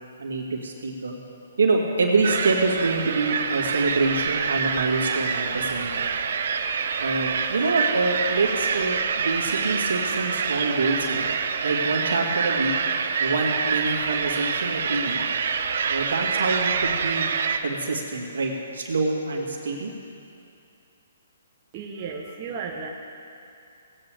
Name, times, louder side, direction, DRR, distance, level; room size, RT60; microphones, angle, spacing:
voice 1, 0.2-1.2 1.6-6.1 7.0-11.3 11.6-12.7 13.2-15.2 15.9-17.2 17.6-19.9, right 3 dB, 80° right, -1 dB, 2.2 m, -26 dB
sound 1, 2.2-17.6, right 6 dB, 60° right, 0.7 m, -26 dB
voice 2, 21.7-22.9, right 5 dB, 35° right, -1 dB, 1.1 m, -34 dB
18.5 x 9.1 x 3.6 m, 2.6 s
hypercardioid pair, 145°, 0 cm